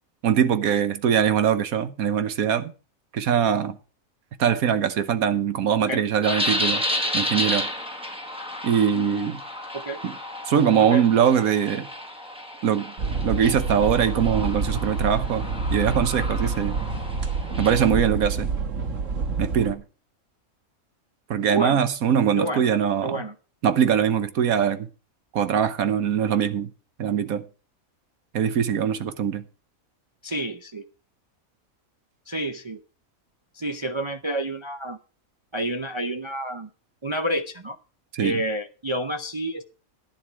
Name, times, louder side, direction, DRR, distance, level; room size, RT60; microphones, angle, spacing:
voice 1, 0.2-2.7 3.1-3.8 4.4-6.8 7.1-7.7 8.6-9.4 10.0-10.1 10.5-11.9 12.6-12.9 13.2-15.4 15.7-16.8 17.6-18.5 19.4-19.8 21.3-23.2 23.6-24.9 25.3-26.7 27.0-27.4 28.3-29.4 38.1-38.4, right 8 dB, 80° right, 1.4 m, -22 dB
sound 1, 6.2-17.9, left 1 dB, 5° right, 1.3 m, -32 dB
sound 2, 13.0-19.7, right 4 dB, 60° right, 1.8 m, -27 dB
voice 2, 22.4-22.7 23.0-23.3 30.2-30.8 32.3-32.8 33.5-35.0 35.5-36.7 37.0-37.8 38.2-39.6, right 1 dB, 40° right, 0.4 m, -29 dB
11.0 x 10.5 x 4.7 m
omnidirectional pair, 1.5 m